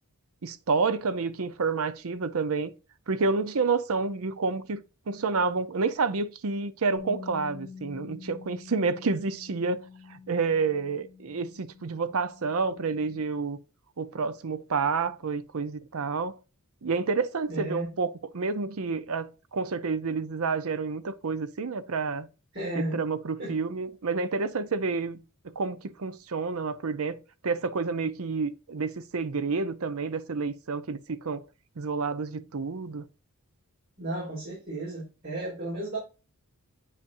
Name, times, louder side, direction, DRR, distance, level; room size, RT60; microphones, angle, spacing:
voice 1, 0.4-2.7 3.1-4.8 5.1-9.8 10.1-13.6 14.0-16.4 16.8-22.3 22.7-31.4 31.8-33.0, right 4 dB, 65° right, 0.6 m, -29 dB
Bass guitar, 7.0-13.2, left 5 dB, 35° left, 1.3 m, -47 dB
voice 2, 17.5-17.9 22.5-23.0 23.4-23.5 34.0-36.0, right 1 dB, 45° right, 3.8 m, -33 dB
8.3 x 5.4 x 2.6 m
head